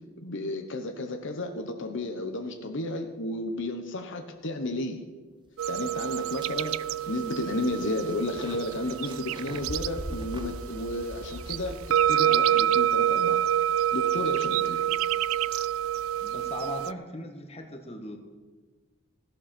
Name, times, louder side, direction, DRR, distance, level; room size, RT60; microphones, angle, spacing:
voice 1, 0.2-5.0 5.7-6.8 7.1-11.8 12.1-13.4 13.9-14.8, left 2 dB, 60° left, 5 dB, 1.1 m, -32 dB
sound 1, 5.5-5.6 6.0-12.3, right 1 dB, 25° right, 0.8 m, -42 dB
sound 2, 5.6-16.9, right 11 dB, 70° right, 0.3 m, -27 dB
voice 2, 16.2-18.2, left 1 dB, 30° left, 4 dB, 1.5 m, -38 dB
16.5 x 11.5 x 4.5 m, 1.3 s
head